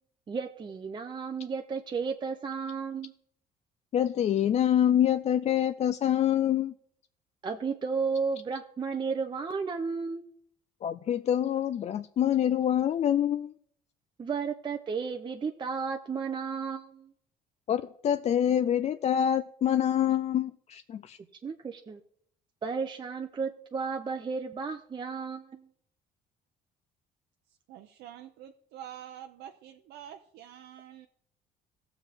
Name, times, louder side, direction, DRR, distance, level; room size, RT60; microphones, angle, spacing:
voice 1, 0.3-3.1 7.4-10.2 14.2-17.1 21.4-22.0 22.6-25.7, right 5 dB, 25° right, 0.6 m, -33 dB
voice 2, 3.9-6.7 10.8-13.5 17.7-21.2, left 10 dB, 40° left, 0.4 m, -26 dB
voice 3, 27.5-31.1, right 10 dB, 80° right, 0.7 m, -47 dB
16.5 x 7.1 x 3.5 m
cardioid pair, 110°, 17 cm